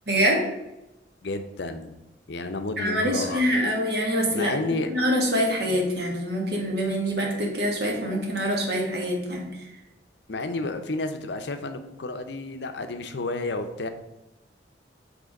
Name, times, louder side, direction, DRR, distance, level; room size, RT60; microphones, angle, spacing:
voice 1, 0.1-0.4 2.8-4.5 4.9-9.4, equal, 60° right, 0 dB, 1.5 m, -25 dB
voice 2, 1.2-1.9 2.3-3.4 4.3-4.9 10.3-13.9, left 2 dB, 65° left, 8 dB, 0.6 m, -31 dB
6.0 x 3.6 x 5.2 m, 0.99 s
head